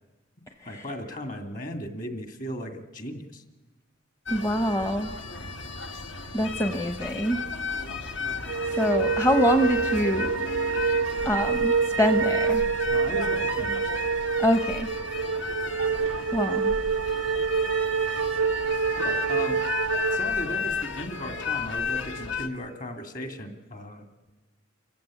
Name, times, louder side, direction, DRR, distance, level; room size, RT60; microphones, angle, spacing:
voice 1, 0.7-3.4 12.9-13.9 19.0-19.6 20.1-24.1, left 1 dB, 45° left, 7 dB, 2.3 m, -36 dB
sound 1, 4.3-22.5, left 4 dB, 70° left, 1.6 m, -34 dB
voice 2, 4.3-5.1 6.3-7.4 8.7-10.3 11.2-12.6 14.4-14.9 16.3-16.7, equal, 15° left, 7 dB, 0.8 m, -25 dB
sound 2, 8.5-20.2, right 5 dB, 85° right, 0.6 m, -26 dB
28.0 x 15.5 x 8.4 m, 1.2 s
head